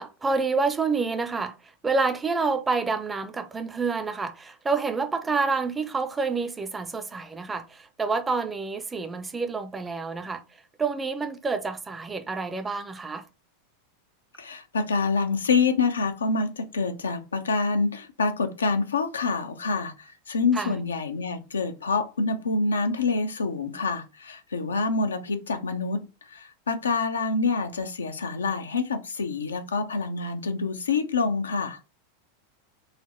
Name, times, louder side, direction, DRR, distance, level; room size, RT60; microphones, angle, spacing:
voice 1, 0.0-1.5 1.8-10.4 10.8-13.2 20.5-20.8, right 4 dB, 15° right, 0.5 m, -28 dB
voice 2, 14.4-26.1 26.3-31.8, left 4 dB, 85° left, 0.5 m, -26 dB
4.0 x 2.0 x 4.2 m
hypercardioid pair, 95°, 0 cm